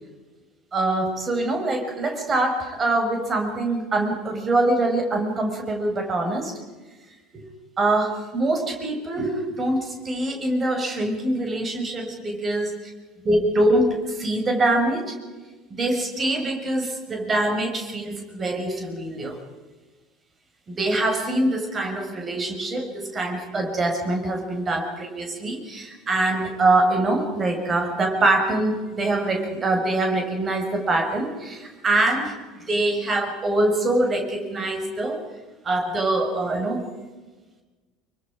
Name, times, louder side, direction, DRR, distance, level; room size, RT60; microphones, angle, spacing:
voice 1, 0.7-6.5 7.3-7.4 7.8-12.7 13.2-15.1 15.7-19.4 20.8-35.2 35.6-36.9, right 2 dB, 25° right, 4 dB, 5.6 m, -24 dB
27.0 x 24.0 x 5.0 m, 1.3 s
figure-of-eight pair, 65°, 0 cm